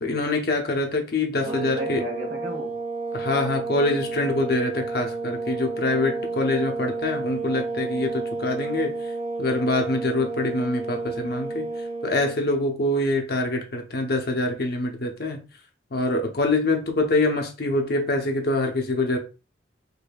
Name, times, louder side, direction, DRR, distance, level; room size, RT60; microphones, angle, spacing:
voice 1, 0.0-2.0 3.1-9.0 9.4-11.7 12.0-15.4 15.9-19.2, left 2 dB, 50° left, 0.8 m, -25 dB
sound 1, 1.4-12.4, right 3 dB, 25° right, 0.7 m, -31 dB
voice 2, 1.4-2.8, right 1 dB, 70° right, 1.6 m, -33 dB
5.1 x 2.7 x 2.3 m
head